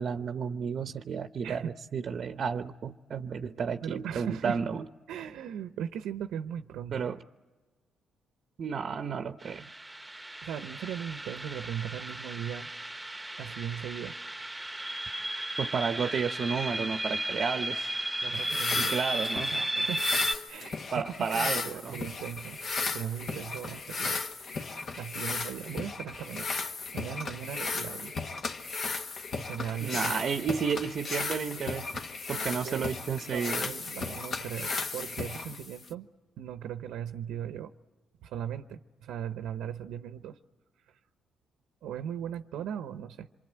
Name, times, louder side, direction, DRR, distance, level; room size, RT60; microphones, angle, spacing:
voice 1, 0.0-4.8 6.9-7.2 8.6-9.7 15.6-18.0 18.8-19.5 20.9-22.0 29.8-31.9 32.3-33.7, right 6 dB, 55° right, 8 dB, 0.8 m, -32 dB
voice 2, 3.8-4.6 5.1-7.1 10.4-12.7 13.4-14.2 18.2-18.9 19.5-20.2 20.5-20.8 21.2-22.6 22.9-24.2 25.0-26.5 26.9-28.1 29.4-30.2 32.6-32.8 33.2-36.1 36.4-37.7 38.2-40.4 40.9-41.0 41.8-43.3, right 9 dB, 85° right, 9 dB, 0.8 m, -38 dB
sound 1, 9.4-20.4, right 1 dB, 10° right, 1.2 m, -34 dB
sound 2, 18.3-35.9, left 4 dB, 50° left, 1.5 m, -35 dB
27.0 x 23.5 x 9.0 m, 1.3 s
cardioid pair, 90°, 0 cm